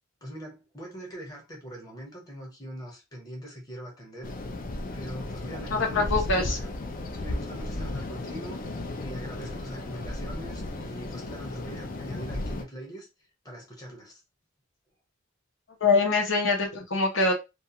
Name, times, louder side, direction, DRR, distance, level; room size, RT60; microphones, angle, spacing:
voice 1, 0.2-4.6 4.9-6.7 7.2-8.6 9.0-13.1 13.4-14.2, equal, 20° left, 1.0 m, -42 dB
sound 1, 4.2-12.6, left 2 dB, 45° left, 0.4 m, -35 dB
voice 2, 5.7-6.6 15.8-17.3, left 3 dB, 75° left, 0.7 m, -24 dB
2.4 x 2.3 x 2.8 m
head